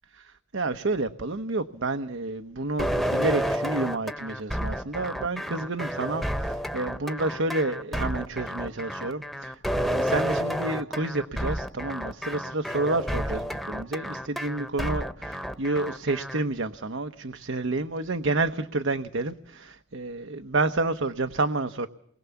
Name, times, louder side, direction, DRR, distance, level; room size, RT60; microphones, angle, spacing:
voice 1, 0.5-21.9, right 2 dB, 85° right, 1.0 m, -29 dB
sound 1, 2.8-16.4, equal, ahead, 1.0 m, -30 dB
29.0 x 21.5 x 7.1 m
head